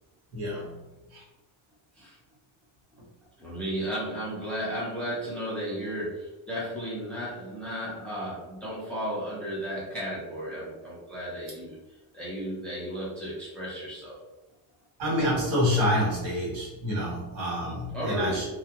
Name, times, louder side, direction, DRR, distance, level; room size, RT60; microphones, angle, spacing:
voice 1, 0.3-0.8 1.1-1.2 15.0-18.4, equal, 75° right, -5 dB, 1.4 m, -27 dB
voice 2, 3.4-11.8 12.1-14.1 17.9-18.4, equal, 5° left, -8 dB, 0.4 m, -34 dB
2.8 x 2.0 x 2.2 m, 1.1 s
cardioid pair, 165°, 46 cm